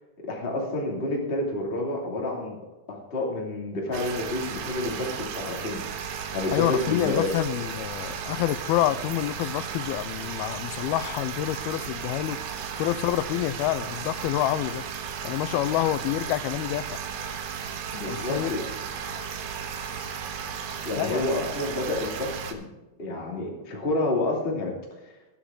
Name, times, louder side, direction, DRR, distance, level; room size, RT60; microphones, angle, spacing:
voice 1, 0.2-2.6 2.9-5.8 6.3-7.3 17.9-18.7 20.8-22.7 23.0-24.7, left 2 dB, 15° left, -2 dB, 2.4 m, -29 dB
sound 1, 3.9-22.5, right 7 dB, 80° right, 3.1 m, -35 dB
voice 2, 6.5-12.4 12.8-14.8 15.2-16.9 18.1-18.5 21.0-21.3, left 14 dB, 85° left, 15 dB, 2.5 m, -27 dB
20.0 x 8.7 x 3.8 m, 1.1 s
omnidirectional pair, 4.4 m